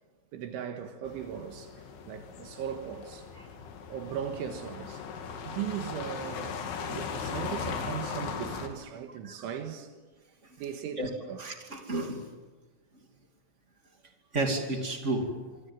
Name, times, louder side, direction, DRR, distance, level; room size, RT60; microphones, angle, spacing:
voice 1, 0.3-1.7 2.1-3.3 3.9-5.0 5.5-9.9 10.6-11.4, right 8 dB, 80° right, 4.0 m, -38 dB
sound 1, 1.0-8.7, left 6 dB, 75° left, 4.7 m, -38 dB
voice 2, 11.4-12.2 14.3-15.3, right 2 dB, 20° right, 1.9 m, -31 dB
26.0 x 25.5 x 7.6 m
omnidirectional pair, 5.6 m